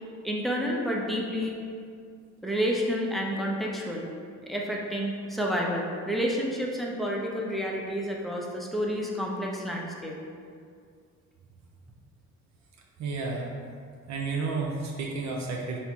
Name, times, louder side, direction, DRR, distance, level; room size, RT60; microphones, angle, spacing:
voice 1, 0.2-1.6 2.4-4.1 4.5-10.2, equal, ahead, -2 dB, 0.6 m, -29 dB
voice 2, 13.0-13.5 14.1-15.8, right 4 dB, 65° right, -1 dB, 0.6 m, -31 dB
4.2 x 2.1 x 4.4 m, 2.2 s
cardioid pair, 90°, 30 cm